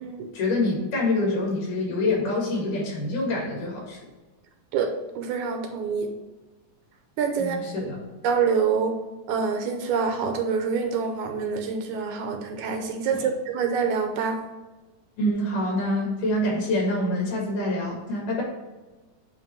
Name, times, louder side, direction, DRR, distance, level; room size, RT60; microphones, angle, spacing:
voice 1, 0.3-4.0 7.4-8.1 13.1-13.3 15.2-18.4, left 1 dB, 75° left, -2 dB, 3.6 m, -26 dB
voice 2, 5.2-6.1 7.2-7.6 8.2-8.9 9.3-13.2 13.5-14.3, right 5 dB, 75° right, 5 dB, 2.0 m, -26 dB
8.8 x 3.0 x 4.5 m, 1.2 s
omnidirectional pair, 3.7 m